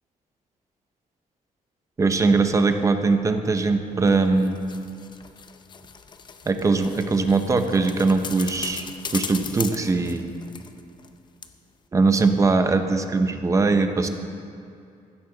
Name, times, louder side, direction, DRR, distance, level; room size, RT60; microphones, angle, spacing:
voice 1, 2.0-4.6 6.5-10.4 11.9-14.1, right 3 dB, 20° right, 7 dB, 0.7 m, -21 dB
sound 1, 4.1-11.1 11.4-11.5, left 6 dB, 30° left, 0.6 m, -38 dB
15.0 x 12.5 x 3.9 m, 2.5 s
cardioid pair, 165°, 15 cm